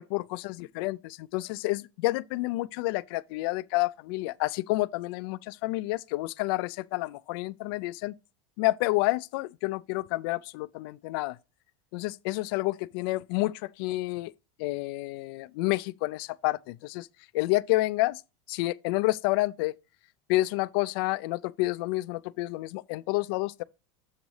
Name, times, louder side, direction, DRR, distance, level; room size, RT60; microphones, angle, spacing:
voice 1, 0.0-8.2 8.6-11.4 11.9-14.3 14.6-17.1 17.3-18.2 18.5-19.8 20.3-23.6, left 20 dB, 55° left, 0.4 m, -29 dB
7.3 x 4.7 x 4.0 m
supercardioid pair, 160°, 15 cm